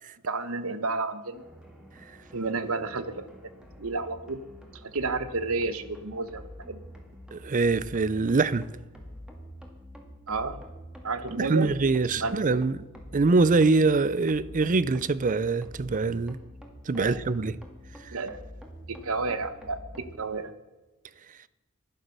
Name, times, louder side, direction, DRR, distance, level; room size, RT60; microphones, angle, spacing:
voice 1, 0.2-1.4 2.3-3.3 3.8-4.4 4.8-6.8 10.3-10.6 11.0-11.7 12.2-12.7 17.0-17.2 18.1-18.4 18.9-20.5, right 3 dB, 70° right, 1.1 m, -31 dB
sound 1, 1.3-20.2, equal, 5° right, 2.1 m, -46 dB
voice 2, 7.3-8.6 11.3-12.8 13.1-16.4 16.9-17.6, right 3 dB, 35° right, 0.5 m, -24 dB
11.5 x 11.0 x 6.8 m
head